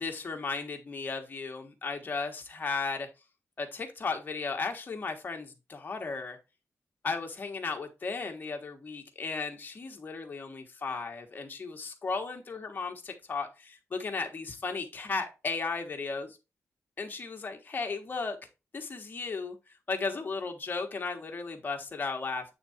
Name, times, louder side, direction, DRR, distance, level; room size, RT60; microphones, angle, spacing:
voice 1, 0.0-3.1 3.6-6.4 7.0-16.4 17.0-18.4 18.7-19.5 19.9-22.5, left 4 dB, 35° left, 1.4 m, -35 dB
8.5 x 3.7 x 4.3 m
wide cardioid pair, 160°, 6 cm